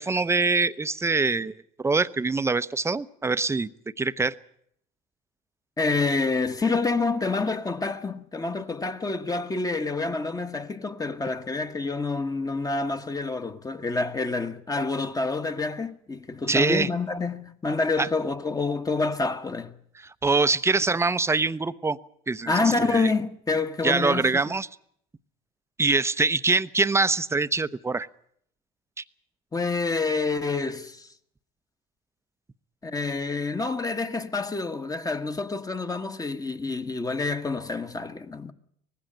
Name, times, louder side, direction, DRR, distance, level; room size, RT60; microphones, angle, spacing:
voice 1, 0.0-3.7 4.0-4.3 16.5-16.9 18.0-18.1 20.0-22.0 22.3-22.5 22.8-23.1 23.8-24.7 25.8-28.1, right 3 dB, 15° right, 0.7 m, -24 dB
voice 2, 5.8-19.7 22.5-24.4 29.5-31.1 32.8-38.5, left 3 dB, 20° left, 1.3 m, -27 dB
19.5 x 15.5 x 8.9 m
supercardioid pair, 80°, 19 cm